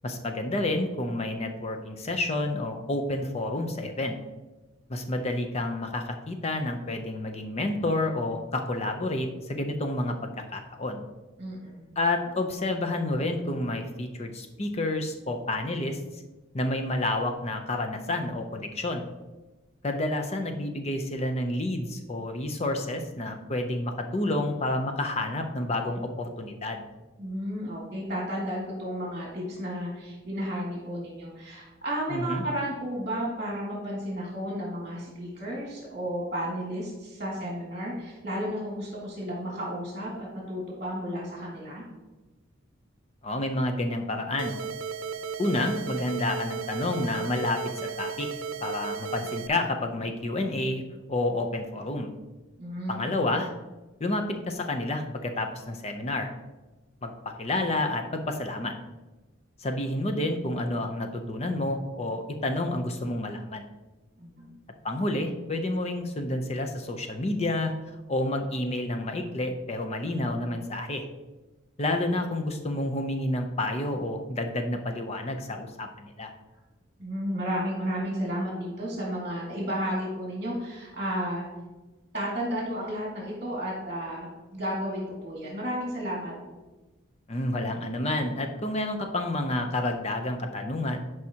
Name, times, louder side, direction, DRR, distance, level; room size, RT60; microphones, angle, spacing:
voice 1, 0.0-4.1 4.9-10.2 10.5-11.1 12.0-16.0 16.5-19.1 19.8-26.8 32.1-32.4 43.2-44.6 45.4-48.3 48.6-50.8 51.1-52.1 52.9-53.5 54.0-56.3 57.0-57.1 57.4-58.7 59.6-63.7 64.8-71.0 71.8-76.3 87.3-91.0, left 1 dB, 30° left, 5 dB, 0.6 m, -29 dB
voice 2, 11.4-11.8 27.2-41.9 52.6-53.0 64.2-64.7 77.0-81.5 82.1-86.3, equal, 35° right, -4 dB, 1.9 m, -33 dB
sound 1, 44.4-49.5, right 6 dB, 90° right, 0.6 m, -35 dB
10.5 x 4.9 x 2.8 m, 1.2 s
head